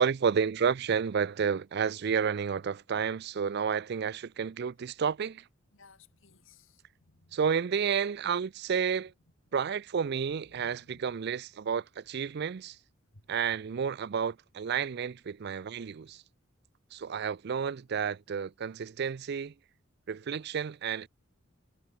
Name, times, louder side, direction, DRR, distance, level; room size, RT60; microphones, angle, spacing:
voice 1, 0.0-5.4 7.3-9.1 9.5-12.8 13.3-16.2 16.9-19.5 20.1-21.1, right 6 dB, 55° right, 0.4 m, -31 dB
voice 2, 5.7-7.4 10.5-11.0 13.1-13.2, left 3 dB, 85° left, 2.9 m, -59 dB
head